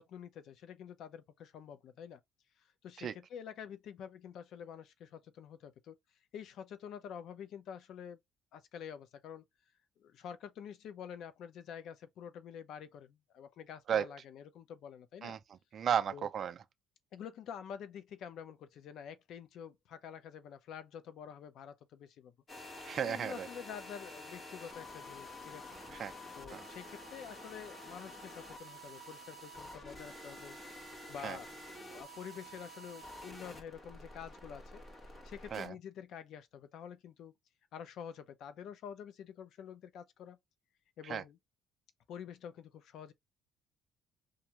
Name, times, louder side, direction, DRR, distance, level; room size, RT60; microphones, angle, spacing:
voice 1, 0.0-2.2 2.8-5.9 6.3-8.2 8.5-9.4 10.0-15.4 16.1-16.3 17.1-22.3 23.0-25.6 26.4-30.6 31.1-31.5 31.9-34.8 35.2-37.3 37.7-40.4 41.0-41.4 42.1-43.1, left 8 dB, 60° left, 0.5 m, -48 dB
voice 2, 15.7-16.6 22.8-23.5 25.9-26.1 26.5-26.6 31.2-31.4 35.5-35.7 41.1-41.2, right 8 dB, 40° right, 0.4 m, -34 dB
sound 1, 22.5-35.7, left 1 dB, 30° left, 1.1 m, -49 dB
2.6 x 2.2 x 2.9 m
cardioid pair, 145°, 0 cm